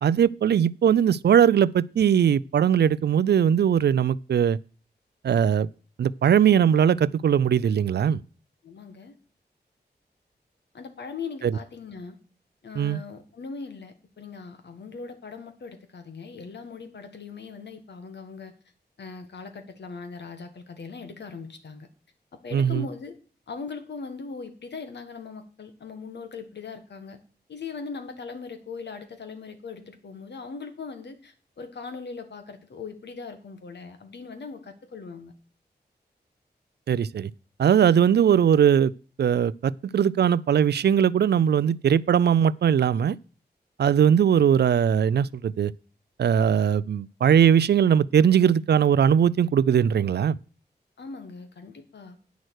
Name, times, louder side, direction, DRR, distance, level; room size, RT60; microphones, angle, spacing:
voice 1, 0.0-4.6 5.2-5.7 6.0-8.2 11.4-11.5 12.8-13.0 22.5-22.8 36.9-37.3 37.6-38.9 39.2-43.2 43.8-45.7 46.2-50.4, right 8 dB, 75° right, 0.4 m, -20 dB
voice 2, 8.6-9.2 10.7-12.2 12.6-18.5 19.0-21.9 22.4-23.2 23.5-27.2 27.5-35.3 51.0-52.2, left 4 dB, 85° left, 1.6 m, -40 dB
9.2 x 6.5 x 6.3 m
cardioid pair, 60°, 17 cm